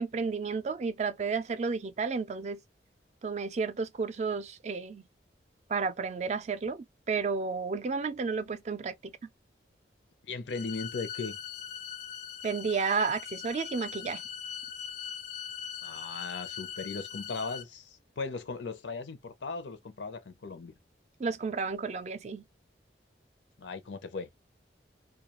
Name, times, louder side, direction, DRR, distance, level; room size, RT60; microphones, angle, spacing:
voice 1, 0.0-2.6 3.2-5.0 5.7-9.1 12.4-14.2 21.2-22.4, right 5 dB, 40° right, 0.4 m, -32 dB
voice 2, 10.2-11.4 15.8-20.7 23.6-24.3, left 4 dB, 85° left, 0.6 m, -38 dB
sound 1, 10.5-17.6, left 8 dB, 45° left, 0.4 m, -41 dB
2.3 x 2.3 x 2.9 m
head